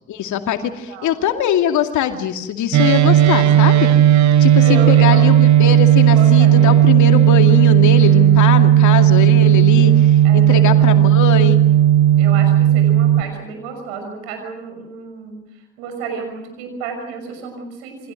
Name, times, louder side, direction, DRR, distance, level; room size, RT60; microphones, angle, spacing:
voice 1, 0.1-3.9 4.4-11.6, left 9 dB, 65° left, 6 dB, 2.4 m, -21 dB
sound 1, 2.7-13.2, right 11 dB, 60° right, 1.4 m, -12 dB
voice 2, 4.6-5.7 6.1-6.8 10.2-10.9 12.1-15.4 15.8-18.1, right 5 dB, 80° right, 5 dB, 6.4 m, -31 dB
28.5 x 24.5 x 6.5 m, 0.85 s
hypercardioid pair, 45°, 31 cm